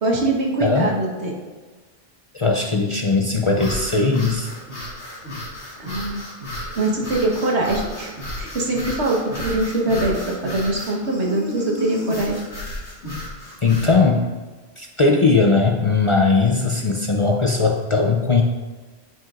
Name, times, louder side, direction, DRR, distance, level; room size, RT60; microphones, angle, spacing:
voice 1, 0.0-1.3 5.8-6.2 6.7-12.4, right 2 dB, 90° right, -1 dB, 1.6 m, -23 dB
voice 2, 0.6-0.9 2.3-4.5 13.6-14.3 14.8-18.4, left 4 dB, 40° left, 1 dB, 0.4 m, -19 dB
sound 1, 3.6-14.0, left 1 dB, 85° left, 2.2 m, -33 dB
10.0 x 6.0 x 2.5 m, 1.3 s
omnidirectional pair, 1.1 m